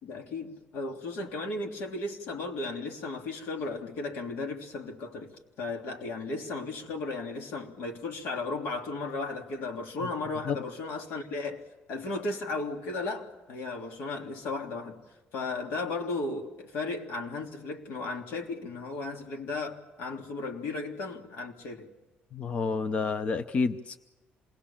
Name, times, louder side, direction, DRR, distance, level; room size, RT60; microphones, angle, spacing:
voice 1, 0.0-15.0 15.3-21.9, left 3 dB, 80° left, 3 dB, 3.4 m, -35 dB
voice 2, 22.3-24.0, left 4 dB, 35° left, 11 dB, 0.7 m, -29 dB
27.5 x 20.5 x 7.2 m, 1.1 s
cardioid pair, 170°, 4 cm